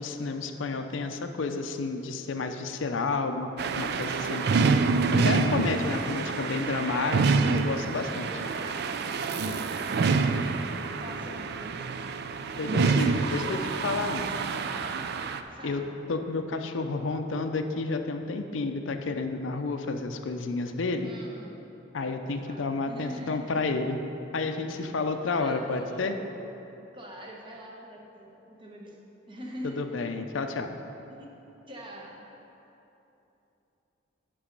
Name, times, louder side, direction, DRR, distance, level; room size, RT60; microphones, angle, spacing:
voice 1, 0.0-3.5 3.8-4.5 5.2-8.3 12.6-13.6 13.8-14.2 15.6-15.8 16.1-21.1 21.9-24.0 24.3-26.2 29.6-30.8, left 3 dB, 80° left, 7 dB, 0.5 m, -30 dB
sound 1, 3.6-15.4, right 4 dB, 55° right, 0.4 m, -27 dB
voice 2, 8.2-9.1 9.4-12.1 12.5-13.7 14.6-14.9 15.5-15.9 21.0-21.5 22.2-23.6 24.7-24.9 25.4-26.2 26.9-29.0 29.3-29.9 31.1-31.3 31.7-32.3, equal, 25° right, -1 dB, 1.1 m, -44 dB
10.0 x 5.4 x 5.2 m, 3.0 s
head